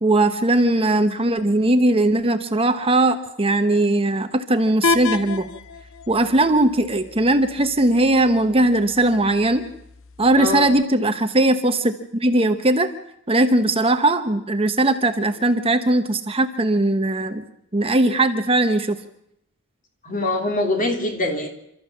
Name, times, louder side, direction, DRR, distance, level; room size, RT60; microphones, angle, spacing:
voice 1, 0.0-5.5 6.1-9.7 10.2-12.9 13.3-17.5 17.7-19.0, right 2 dB, 25° right, 8 dB, 1.1 m, -19 dB
sound 1, 4.8-10.8, left 3 dB, 65° left, 0.9 m, -31 dB
voice 2, 10.4-10.7 20.0-21.5, left 2 dB, 40° left, 4 dB, 3.3 m, -23 dB
29.0 x 13.5 x 7.3 m, 0.79 s
head